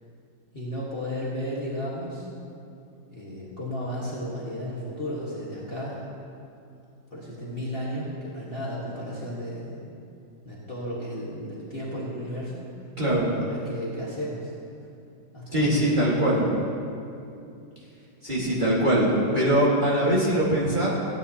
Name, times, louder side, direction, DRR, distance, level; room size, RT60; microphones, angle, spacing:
voice 1, 0.5-2.3 3.1-6.1 7.1-9.8 10.4-12.7 13.3-14.5 15.3-16.2, equal, 30° left, -7 dB, 1.6 m, -34 dB
voice 2, 13.0-13.4 15.5-16.4 18.2-20.9, right 1 dB, 25° right, -8 dB, 1.6 m, -22 dB
16.0 x 9.6 x 2.8 m, 2.6 s
omnidirectional pair, 2.2 m